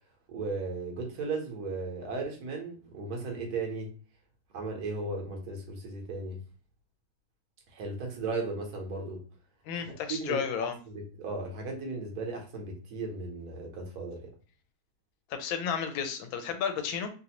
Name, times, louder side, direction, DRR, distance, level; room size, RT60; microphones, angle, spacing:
voice 1, 0.3-3.9 4.5-6.4 7.7-9.2 10.1-14.2, right 3 dB, 60° right, 1.2 m, -36 dB
voice 2, 9.7-10.8 15.3-17.1, left 7 dB, 80° left, 1.3 m, -32 dB
3.3 x 2.5 x 2.9 m
omnidirectional pair, 2.1 m